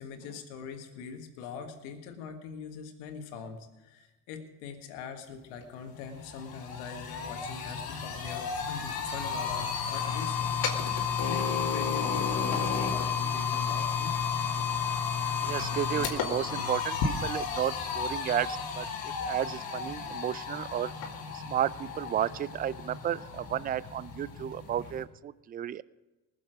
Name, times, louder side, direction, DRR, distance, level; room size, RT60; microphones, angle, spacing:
voice 1, 0.0-10.5 11.3-14.2, left 6 dB, 85° left, 5 dB, 1.7 m, -42 dB
sound 1, 5.6-5.7 6.0-25.0, left 6 dB, 55° left, 2.3 m, -32 dB
voice 2, 15.4-20.9 21.3-25.8, right 11 dB, 25° right, 20 dB, 0.3 m, -33 dB
19.5 x 7.3 x 5.0 m, 1.1 s
supercardioid pair, 70°, 42 cm